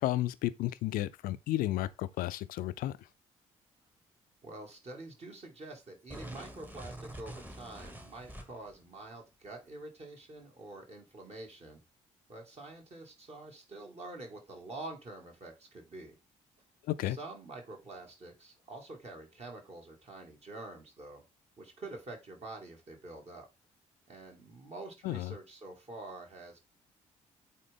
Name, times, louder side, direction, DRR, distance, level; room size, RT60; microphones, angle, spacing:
voice 1, 0.0-3.0 16.9-17.2 25.0-25.3, left 14 dB, 55° left, 0.5 m, -32 dB
voice 2, 4.4-11.8 12.3-16.2 17.0-21.2 21.6-23.5 24.1-26.6, right 2 dB, 40° right, 2.5 m, -47 dB
sound 1, 6.1-8.8, right 1 dB, 10° right, 1.4 m, -46 dB
8.4 x 3.9 x 3.7 m
figure-of-eight pair, 45°, 17 cm